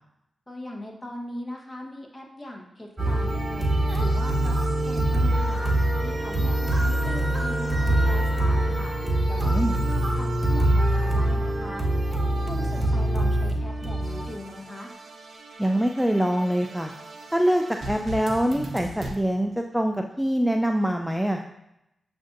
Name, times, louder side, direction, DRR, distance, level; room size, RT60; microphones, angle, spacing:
voice 1, 0.5-3.6 4.0-5.7 6.0-8.9 9.3-11.9 12.5-14.9, left 1 dB, 25° left, 0 dB, 1.1 m, -39 dB
sound 1, 3.0-14.3, right 1 dB, 25° right, 1.0 m, -24 dB
voice 2, 9.4-9.7 15.6-16.9 17.3-21.4, equal, 5° right, 4 dB, 0.3 m, -24 dB
sound 2, 14.0-19.2, right 1 dB, 60° right, 0.6 m, -40 dB
7.3 x 2.6 x 2.5 m, 0.85 s
supercardioid pair, 40°, 0 cm